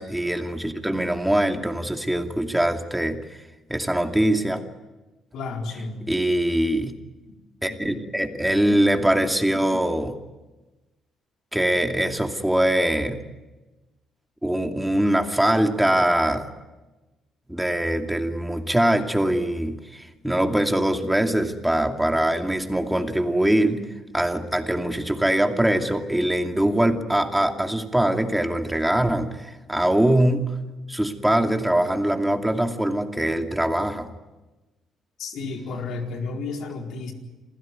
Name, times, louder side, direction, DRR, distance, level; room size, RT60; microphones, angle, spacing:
voice 1, 0.0-3.2 3.7-4.6 6.1-6.9 7.6-10.2 11.5-13.2 14.4-16.5 17.5-23.8 24.1-30.5 30.9-34.1, right 1 dB, 5° right, 4 dB, 2.5 m, -22 dB
voice 2, 5.3-6.1 7.6-7.9 35.2-37.1, left 3 dB, 75° left, 2 dB, 4.5 m, -32 dB
27.0 x 16.0 x 9.6 m, 1.1 s
cardioid pair, 85°, 0 cm